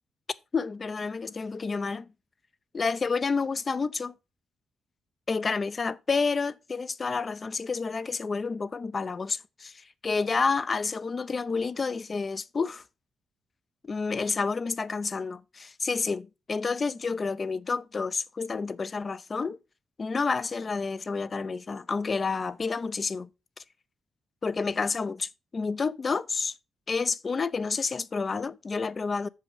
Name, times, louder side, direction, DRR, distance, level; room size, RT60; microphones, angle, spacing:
voice 1, 0.5-2.1 2.7-4.1 5.3-9.7 10.0-12.8 13.9-19.6 20.0-23.3 24.4-26.5 26.9-29.3, left 4 dB, 40° left, 0.5 m, -29 dB
7.2 x 5.5 x 4.8 m
cardioid pair, 80°, 0 cm